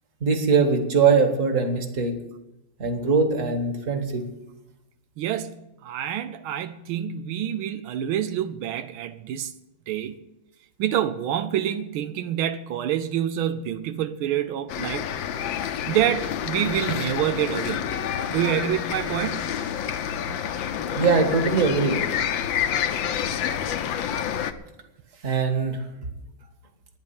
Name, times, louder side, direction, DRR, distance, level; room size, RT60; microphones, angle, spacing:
voice 1, 0.2-2.2 2.8-4.3 20.9-22.0 25.2-25.8, right 5 dB, 40° right, 2.0 m, -21 dB
voice 2, 5.2-9.5 9.9-10.2 10.8-15.0 15.9-17.8 18.3-19.4, right 10 dB, 85° right, 1.5 m, -27 dB
sound 1, 14.7-24.5, left 9 dB, 70° left, 1.5 m, -28 dB
12.5 x 10.0 x 8.7 m
omnidirectional pair, 2.2 m